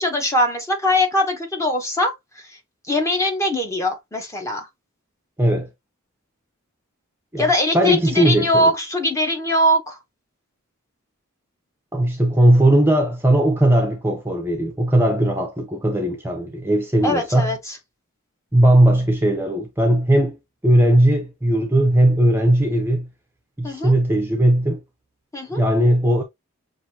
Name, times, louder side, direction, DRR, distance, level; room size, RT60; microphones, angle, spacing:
voice 1, 0.0-2.5 2.9-4.7 7.4-10.0 17.0-17.8 23.6-23.9 25.3-25.6, left 1 dB, 15° left, 1.0 m, -21 dB
voice 2, 5.4-5.7 7.3-8.7 11.9-17.5 18.5-20.4 20.6-23.1 23.6-24.8 25.5-26.2, right 1 dB, 10° right, 0.6 m, -18 dB
6.0 x 2.6 x 2.8 m
head